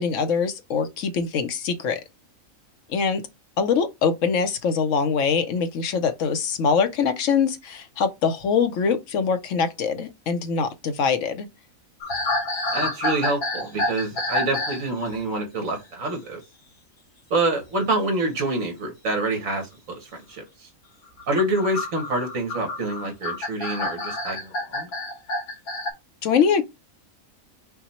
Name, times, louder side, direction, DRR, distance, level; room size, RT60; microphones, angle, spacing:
voice 1, 0.0-2.0 2.9-3.2 3.6-11.5 26.2-26.6, left 6 dB, 70° left, 1.0 m, -23 dB
sound 1, 12.0-14.8 15.1-15.4 17.6-17.8 19.1-19.2 21.1-25.9, left 2 dB, 85° left, 1.7 m, -28 dB
voice 2, 12.7-16.4 17.3-19.7 20.0-20.7 21.3-24.9, right 2 dB, 70° right, 1.8 m, -26 dB
5.7 x 2.2 x 4.1 m
omnidirectional pair, 1.4 m